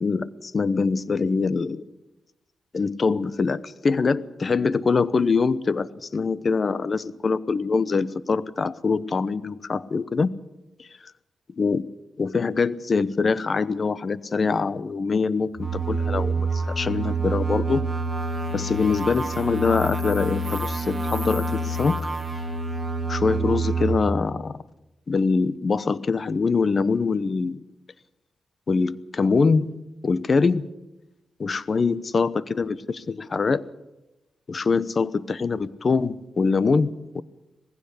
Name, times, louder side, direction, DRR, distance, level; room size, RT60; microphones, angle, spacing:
voice 1, 0.0-1.8 2.7-10.3 11.6-11.9 12.2-17.8 18.5-22.0 23.1-24.6 25.1-27.6 28.7-29.7 30.0-30.7 31.4-33.6 34.5-37.2, left 4 dB, 45° left, 17 dB, 0.9 m, -24 dB
sound 1, 15.5-23.9, right 2 dB, 20° right, 2.9 m, -27 dB
20.0 x 16.0 x 8.3 m, 0.97 s
cardioid pair, 85°, 0 cm